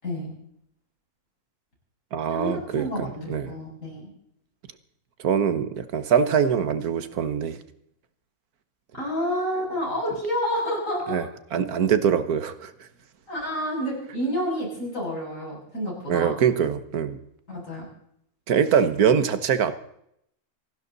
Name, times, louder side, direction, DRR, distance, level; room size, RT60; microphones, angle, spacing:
voice 1, 0.0-0.3 2.3-4.1 8.9-11.2 13.3-16.3 17.5-17.9, equal, 55° left, -3 dB, 7.7 m, -29 dB
voice 2, 2.1-3.5 5.2-7.6 11.1-12.9 16.1-17.2 18.5-19.7, right 7 dB, 75° right, 12 dB, 1.7 m, -23 dB
27.0 x 11.5 x 4.0 m, 0.73 s
omnidirectional pair, 1.6 m